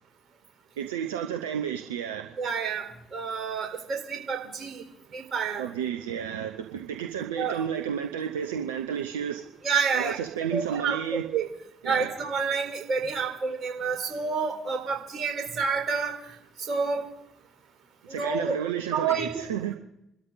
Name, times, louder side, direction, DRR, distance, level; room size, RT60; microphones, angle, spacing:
voice 1, 0.8-2.4 5.6-9.6 9.9-11.2 11.8-12.1 18.1-19.7, right 9 dB, 80° right, 4 dB, 0.9 m, -32 dB
voice 2, 2.4-4.8 5.1-5.6 7.4-7.6 9.6-10.2 10.5-11.5 11.8-16.2 16.6-17.1 18.1-18.6 18.9-19.5, right 5 dB, 50° right, 3 dB, 4.3 m, -29 dB
27.5 x 13.0 x 4.0 m, 0.83 s
hypercardioid pair, 45°, 0 cm